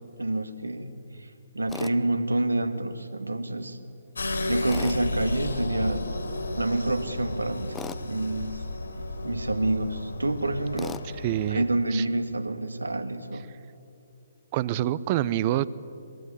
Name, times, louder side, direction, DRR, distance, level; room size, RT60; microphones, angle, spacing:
voice 1, 0.2-0.9 1.2-3.8 4.5-6.1 6.6-7.8 8.0-8.6 9.2-11.0 11.5-13.4, right 2 dB, 75° right, 9 dB, 2.1 m, -28 dB
Tools, 1.7-2.0 4.7-5.0 7.7-8.0 10.8-11.1, left 6 dB, 10° left, 0.7 m, -37 dB
sound 1, 4.1-11.5, left 2 dB, 70° left, 4.8 m, -33 dB
voice 2, 11.2-11.6 11.9-12.0 14.5-15.6, right 13 dB, 30° right, 19 dB, 0.7 m, -26 dB
23.0 x 22.5 x 9.8 m, 2.7 s
figure-of-eight pair, 135°, 0 cm